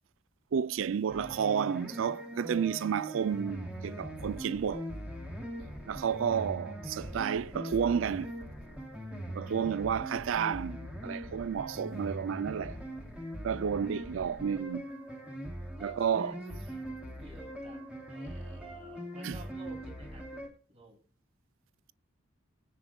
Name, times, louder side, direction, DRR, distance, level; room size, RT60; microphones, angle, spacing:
voice 1, 0.5-4.9 5.9-8.3 9.3-12.8 13.4-14.9 15.8-16.4 19.2-19.4, right 7 dB, 85° right, 0.4 m, -31 dB
sound 1, 1.1-20.5, equal, 5° right, 2.8 m, -41 dB
voice 2, 15.8-16.9 17.2-20.4 20.7-21.0, right 2 dB, 30° right, 2.8 m, -52 dB
21.0 x 9.7 x 2.3 m
head